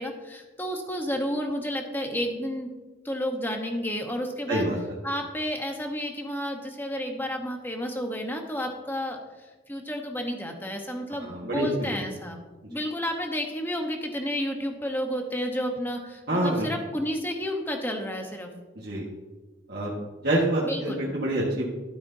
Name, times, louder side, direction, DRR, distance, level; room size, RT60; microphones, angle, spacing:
voice 1, 0.0-2.7 3.0-4.7 5.0-12.4 12.7-18.5 20.6-21.0, equal, 10° left, 3 dB, 1.0 m, -31 dB
voice 2, 11.2-11.9 16.3-16.7 18.8-19.0 19.7-19.9 20.2-21.7, right 1 dB, 50° right, -6 dB, 1.5 m, -26 dB
12.0 x 9.3 x 2.7 m, 1.2 s
head